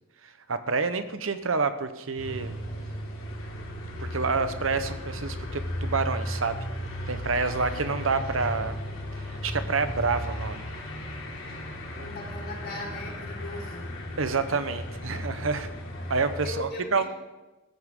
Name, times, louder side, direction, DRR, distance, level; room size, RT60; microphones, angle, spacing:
voice 1, 0.2-2.6 4.0-6.6 7.1-8.7 9.1-10.6 12.0-12.1 14.2-15.7 16.1-17.0, right 4 dB, 75° right, 10 dB, 1.0 m, -28 dB
sound 1, 2.2-16.5, left 1 dB, 70° left, 3.0 m, -35 dB
voice 2, 7.3-8.6 12.0-13.9 16.4-17.0, left 2 dB, 50° left, -3 dB, 4.7 m, -40 dB
14.5 x 14.5 x 3.8 m, 1.1 s
head